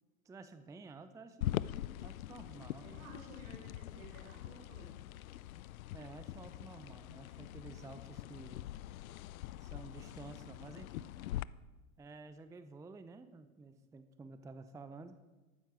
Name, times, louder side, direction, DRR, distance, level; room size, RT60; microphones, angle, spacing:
voice 1, 0.2-3.0 5.9-8.7 9.6-11.1 12.0-15.2, right 3 dB, 10° right, 11 dB, 0.6 m, -52 dB
sound 1, 1.4-11.4, left 14 dB, 75° left, 0.5 m, -43 dB
voice 2, 2.8-4.9, right 3 dB, 70° right, 1 dB, 5.1 m, -55 dB
14.5 x 12.5 x 4.9 m, 1.2 s
hypercardioid pair, 100°, 42 cm